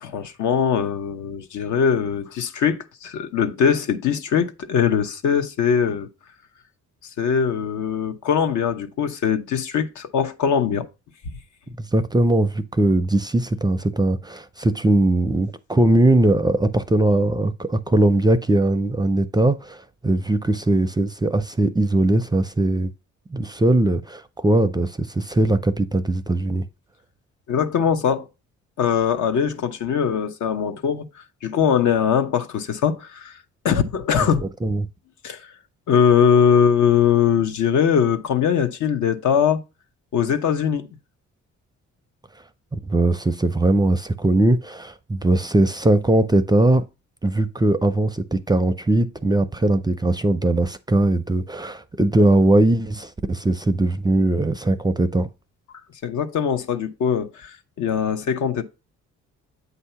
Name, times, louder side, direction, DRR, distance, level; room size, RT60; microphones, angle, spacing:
voice 1, 0.0-6.1 7.2-10.9 27.5-28.3 28.8-31.1 31.4-33.4 33.6-34.5 35.2-35.5 35.9-39.6 40.1-40.9 56.0-58.6, left 7 dB, 75° left, 0.9 m, -21 dB
voice 2, 11.8-22.9 23.3-26.7 34.2-34.3 34.6-34.9 42.7-46.8 47.2-55.3, right 2 dB, 15° right, 0.4 m, -20 dB
8.0 x 2.8 x 5.6 m
cardioid pair, 90°, 30 cm